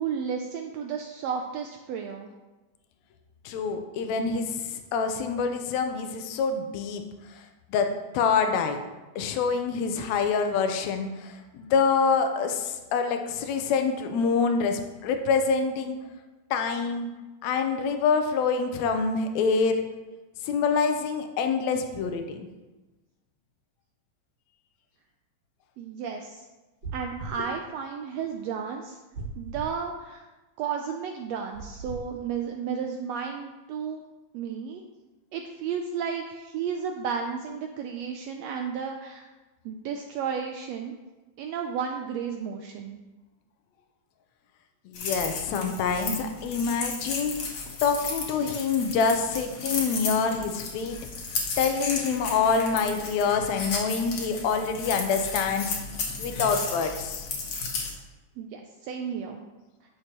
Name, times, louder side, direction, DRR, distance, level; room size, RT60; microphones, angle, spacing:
voice 1, 0.0-2.3 25.8-26.4 26.9-29.0 29.4-30.2 30.6-34.0 34.3-34.8 35.3-39.3 39.6-40.9 41.4-43.0 58.4-59.4, right 7 dB, 85° right, 3 dB, 1.5 m, -33 dB
voice 2, 3.5-7.0 7.7-8.8 9.2-16.0 16.5-17.1 17.4-19.9 20.4-22.5 44.9-47.3 47.8-51.0 51.6-55.8 56.2-57.3, left 5 dB, 75° left, 6 dB, 1.9 m, -26 dB
sound 1, 26.8-27.4 29.1-29.7 31.5-32.0, right 3 dB, 65° right, 2.8 m, -37 dB
sound 2, 44.9-57.9, left 4 dB, 60° left, 2.1 m, -34 dB
10.5 x 6.6 x 3.0 m, 1.1 s
omnidirectional pair, 3.5 m